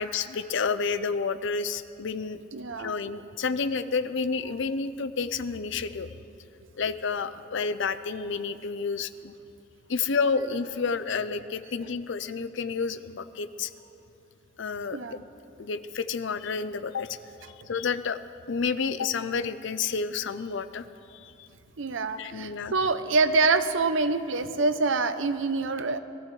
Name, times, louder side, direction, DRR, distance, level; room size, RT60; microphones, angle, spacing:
voice 1, 0.0-2.4 2.8-6.1 6.8-9.3 9.9-13.7 14.6-15.2 15.6-17.2 17.7-18.2 18.5-21.5 22.2-22.7, left 5 dB, 60° left, 12 dB, 0.5 m, -30 dB
voice 2, 2.5-2.9 14.9-15.2 21.8-26.0, right 3 dB, 60° right, 11 dB, 0.7 m, -26 dB
23.0 x 14.5 x 3.3 m, 2.7 s
head